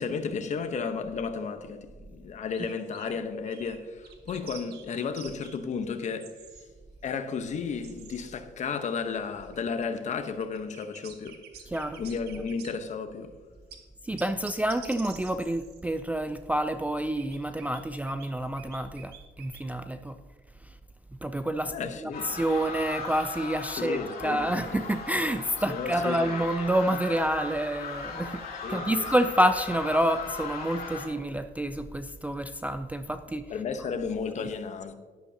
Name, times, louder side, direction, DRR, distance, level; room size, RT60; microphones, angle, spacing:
voice 1, 0.0-6.3 7.0-11.4 12.0-13.3 21.7-22.3 23.8-24.6 25.7-26.4 28.6-29.0 33.5-34.9, left 5 dB, 45° left, 1.0 m, -33 dB
sound 1, 2.5-3.1 3.4-3.8 4.0-5.6 6.2-6.6 7.0-7.1 7.8-8.2 9.1-12.9 13.7-13.8 14.2-15.8 17.0-18.3 18.6-19.6, right 8 dB, 75° right, 1.5 m, -48 dB
voice 2, 11.7-12.0 14.0-20.1 21.2-28.4 28.7-33.5, right 1 dB, 10° right, 0.4 m, -28 dB
sound 2, 22.1-31.1, left 4 dB, 65° left, 2.7 m, -38 dB
11.0 x 11.0 x 2.8 m
cardioid pair, 110°, 17 cm